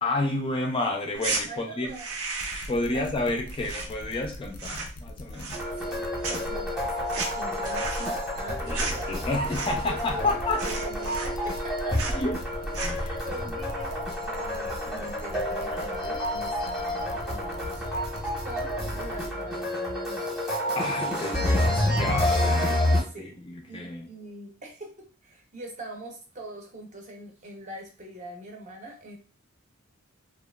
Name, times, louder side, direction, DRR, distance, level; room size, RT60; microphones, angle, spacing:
voice 1, 0.0-1.9 2.7-5.6 8.7-10.6 11.9-12.4 12.8-13.2 15.7-15.9 20.8-24.1, left 2 dB, 25° left, 2 dB, 0.3 m, -30 dB
sound 1, 1.2-1.4 1.9-2.8 3.1-4.3 4.5-5.0 5.3-6.0 6.2-10.0 10.3-10.4 10.6-11.7 11.9-12.2 12.6-13.1, right 3 dB, 90° right, 0.6 m, -33 dB
voice 2, 1.5-2.1 2.9-3.0 5.9-9.1 9.9-12.2 13.2-20.4 21.3-22.0 22.9-24.9 25.2-29.2, right 1 dB, 35° right, 1 dB, 0.6 m, -42 dB
sound 2, 2.4-19.3, left 1 dB, 85° left, 0.5 m, -42 dB
sound 3, 5.5-23.0, left 1 dB, ahead, 0.8 m, -29 dB
2.9 x 2.3 x 2.2 m, 0.35 s
head